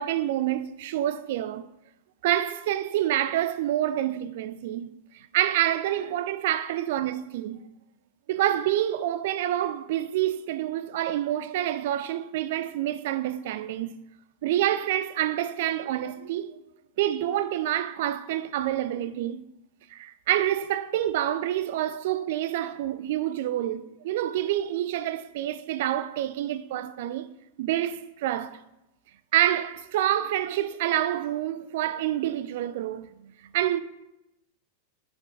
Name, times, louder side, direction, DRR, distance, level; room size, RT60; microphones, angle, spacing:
voice 1, 0.0-1.7 2.2-7.7 8.3-14.0 14.4-16.6 17.0-19.4 19.9-27.3 27.6-28.6 29.3-33.8, right 12 dB, 55° right, 0.4 m, -27 dB
5.9 x 5.3 x 4.7 m
figure-of-eight pair, 90°, 0 cm